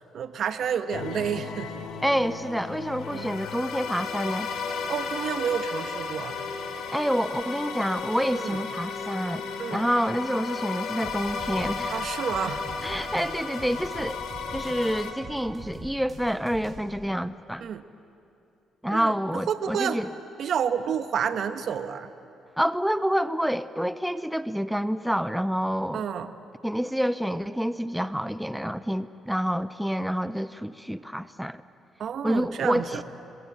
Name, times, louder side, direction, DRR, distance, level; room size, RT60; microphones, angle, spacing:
voice 1, 0.0-1.7 3.1-3.3 4.9-6.4 8.3-8.6 9.6-9.8 11.9-12.6 17.6-17.8 18.9-20.0 20.4-22.1 25.9-26.3 32.0-33.0, right 8 dB, 65° right, 10 dB, 1.3 m, -30 dB
sound 1, 0.9-15.1, left 5 dB, 80° left, 2.9 m, -34 dB
voice 2, 2.0-4.5 6.9-12.0 12.8-14.2 14.5-17.6 18.8-20.1 22.6-26.0 26.6-31.6 32.2-33.0, equal, ahead, 14 dB, 0.7 m, -28 dB
sound 2, 11.0-16.8, right 1 dB, 30° right, 6.3 m, -43 dB
27.0 x 22.0 x 8.9 m, 2.7 s
cardioid pair, 90°, 0 cm